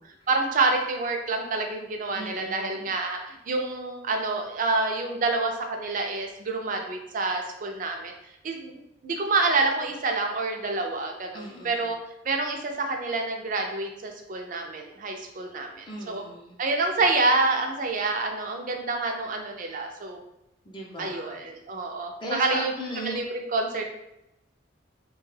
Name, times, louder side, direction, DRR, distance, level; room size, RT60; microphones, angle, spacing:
voice 1, 0.3-8.1 8.4-12.0 12.2-16.2 16.6-20.2 21.0-23.8, right 3 dB, 45° right, 3 dB, 0.5 m, -27 dB
voice 2, 2.1-2.9 11.3-11.9 15.9-16.6 20.6-21.4 22.2-23.2, equal, 25° left, -3 dB, 0.5 m, -37 dB
3.1 x 2.2 x 3.2 m, 0.85 s
head